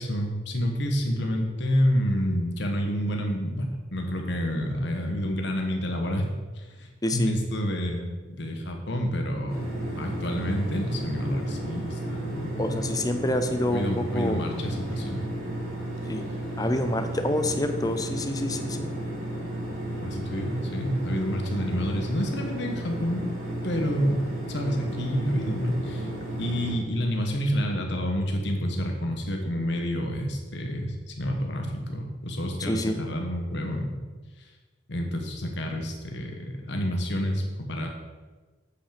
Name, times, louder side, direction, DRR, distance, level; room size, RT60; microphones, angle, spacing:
voice 1, 0.0-6.3 6.5-8.1 8.4-12.8 13.7-15.2 20.0-23.3 23.6-24.2 24.5-26.1 26.4-33.9 34.9-37.9, equal, 60° left, 3 dB, 1.3 m, -28 dB
voice 2, 7.0-7.3 12.6-14.5 16.1-16.2 16.6-18.9 32.6-33.0, left 1 dB, 20° left, 8 dB, 0.6 m, -27 dB
sound 1, 9.5-26.7, right 1 dB, 85° right, 2.8 m, -33 dB
8.4 x 5.6 x 5.1 m, 1.3 s
head